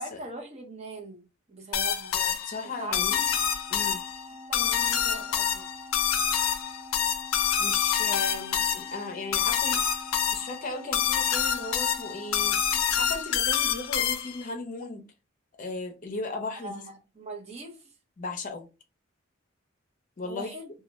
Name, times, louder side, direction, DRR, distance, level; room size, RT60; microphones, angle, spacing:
voice 1, 0.0-3.5 4.5-5.8 16.6-17.9 20.2-20.7, right 2 dB, 35° right, 0.7 m, -42 dB
sound 1, 1.7-14.5, left 8 dB, 85° left, 0.4 m, -27 dB
voice 2, 2.1-3.2 3.7-4.0 7.6-9.8 10.3-15.0 15.6-16.8 18.2-18.7 20.2-20.5, left 3 dB, 40° left, 0.6 m, -36 dB
Organ, 2.6-13.9, left 1 dB, 5° right, 0.4 m, -47 dB
2.3 x 2.1 x 2.8 m
head